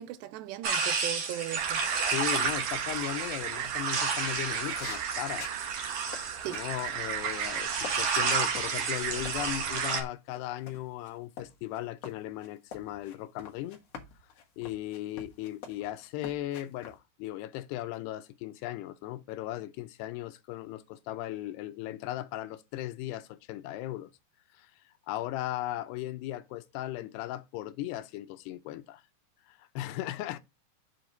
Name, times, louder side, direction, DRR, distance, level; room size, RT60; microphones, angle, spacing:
voice 1, 0.0-1.8 6.4-6.6, right 13 dB, 90° right, 2.8 m, -38 dB
sound 1, 0.6-10.0, right 5 dB, 50° right, 2.4 m, -32 dB
sound 2, 1.6-10.0, right 10 dB, 70° right, 2.3 m, -36 dB
voice 2, 2.0-5.5 6.5-13.8 14.6-24.1 24.6-24.7 25.1-29.0 29.5-30.4, left 14 dB, 80° left, 2.7 m, -37 dB
sound 3, 3.6-7.9 8.2-17.0, left 6 dB, 60° left, 1.6 m, -48 dB
7.5 x 4.5 x 3.9 m
omnidirectional pair, 4.9 m